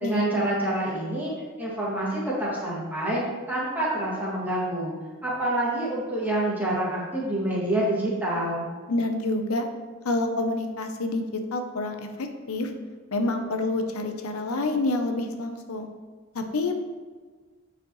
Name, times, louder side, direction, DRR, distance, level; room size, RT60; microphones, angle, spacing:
voice 1, 0.0-1.3 1.6-3.2 3.5-4.9 5.2-8.7, right 1 dB, 10° right, -7 dB, 2.0 m, -27 dB
voice 2, 8.9-9.6 10.0-12.7 13.1-15.9 16.3-16.8, left 2 dB, 90° left, 6 dB, 0.8 m, -28 dB
8.6 x 5.0 x 3.1 m, 1.5 s
head